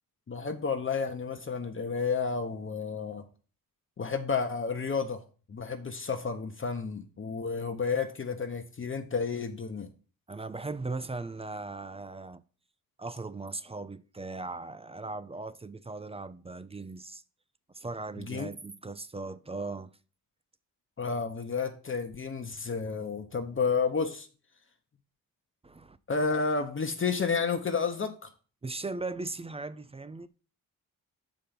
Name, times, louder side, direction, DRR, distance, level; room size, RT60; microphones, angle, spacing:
voice 1, 0.3-3.2 4.0-5.2 5.5-9.9 18.2-18.5 21.0-24.3 26.1-28.3, left 5 dB, 35° left, 0.9 m, -31 dB
voice 2, 10.3-12.4 13.0-17.2 17.7-19.9 25.6-26.0 28.6-30.3, right 3 dB, 15° right, 0.5 m, -38 dB
6.7 x 5.1 x 5.9 m
cardioid pair, 90°, 36 cm